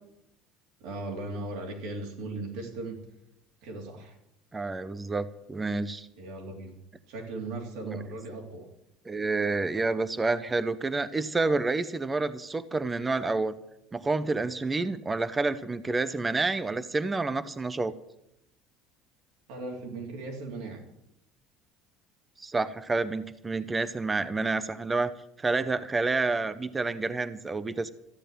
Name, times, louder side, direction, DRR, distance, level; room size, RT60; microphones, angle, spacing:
voice 1, 0.8-3.0 3.6-4.1 6.2-6.7 7.1-8.7 19.5-20.8, right 2 dB, 70° right, 1 dB, 3.1 m, -37 dB
voice 2, 4.5-6.1 7.9-8.0 9.1-13.5 13.9-17.9 22.4-25.1 25.4-27.9, right 3 dB, 10° right, 15 dB, 0.6 m, -29 dB
14.0 x 8.5 x 9.1 m, 0.82 s
cardioid pair, 175°, 0 cm